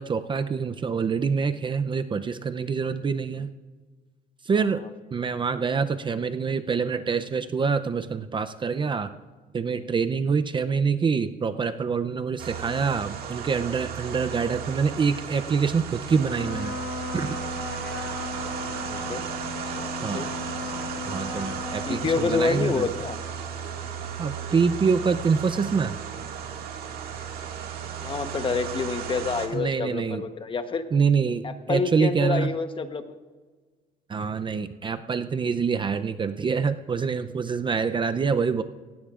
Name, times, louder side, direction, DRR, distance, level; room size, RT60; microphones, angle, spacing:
voice 1, 0.0-3.5 4.4-4.8 5.1-9.1 9.5-16.7 17.1-17.4 20.0-20.3 21.0-22.9 24.2-26.0 29.5-30.2 30.9-32.5 34.1-38.6, right 5 dB, 30° right, 10 dB, 0.5 m, -26 dB
sound 1, 12.4-29.5, right 8 dB, 65° right, 2.0 m, -35 dB
Trumpet, 16.2-23.0, left 4 dB, 65° left, 1.6 m, -36 dB
voice 2, 18.4-19.2 19.8-20.3 21.9-23.2 28.0-30.8 31.4-33.0, left 4 dB, 30° left, 9 dB, 1.0 m, -28 dB
17.5 x 16.5 x 2.5 m, 1.4 s
cardioid pair, 110°, 17 cm